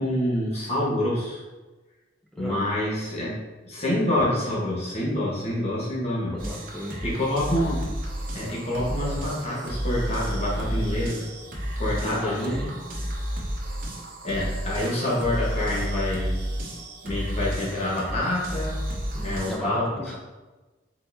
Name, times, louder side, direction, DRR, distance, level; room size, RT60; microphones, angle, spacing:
voice 1, 0.0-1.4 2.4-3.3 3.6-6.3 7.0-8.0 8.3-11.3 11.8-12.5 14.2-16.4 17.0-18.8 19.2-19.9, left 1 dB, 35° left, -7 dB, 1.3 m, -27 dB
voice 2, 2.3-2.6 6.3-7.0 11.9-12.8 19.1-20.1, left 1 dB, 5° left, -3 dB, 0.6 m, -34 dB
sound 1, 6.4-19.6, equal, 50° right, 0.9 m, -31 dB
4.4 x 4.0 x 2.7 m, 1.2 s
head